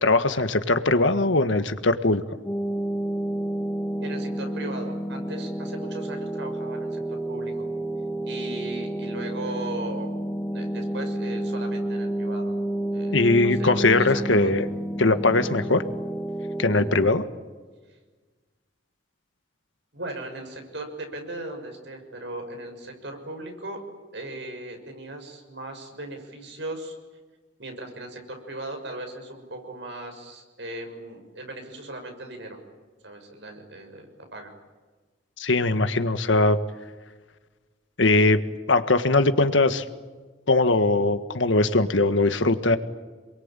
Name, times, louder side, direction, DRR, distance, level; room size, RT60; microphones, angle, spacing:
voice 1, 0.0-2.2 13.1-14.6 15.0-15.8 16.6-17.2 35.4-36.6 38.0-38.4 38.7-39.8 40.5-42.8, left 2 dB, 85° left, 10 dB, 1.6 m, -20 dB
sound 1, 2.5-17.1, right 1 dB, 10° left, 0.9 m, -30 dB
voice 2, 4.0-7.7 8.2-10.1 10.4-12.5 12.9-14.6 19.9-23.8 24.1-26.9 27.6-32.6 33.0-34.5, right 2 dB, 70° right, 4 dB, 6.3 m, -38 dB
28.0 x 22.5 x 9.1 m, 1.3 s
head